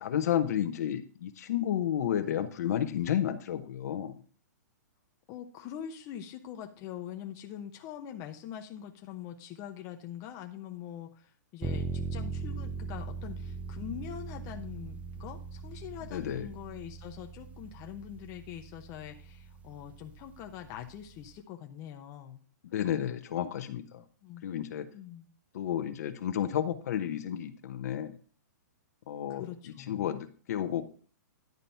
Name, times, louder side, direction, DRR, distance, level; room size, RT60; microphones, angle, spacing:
voice 1, 0.0-4.2 16.1-16.5 22.6-24.0 24.4-24.9 25.5-28.1 29.1-29.4 29.9-30.8, left 10 dB, 60° left, 8 dB, 1.0 m, -31 dB
voice 2, 5.3-22.4 24.2-24.4 24.9-25.3 29.3-30.1, left 10 dB, 35° left, 5 dB, 0.8 m, -43 dB
sound 1, 11.6-21.4, right 5 dB, 15° right, 0.6 m, -40 dB
10.5 x 4.0 x 5.6 m, 0.43 s
hypercardioid pair, 130°, 10 cm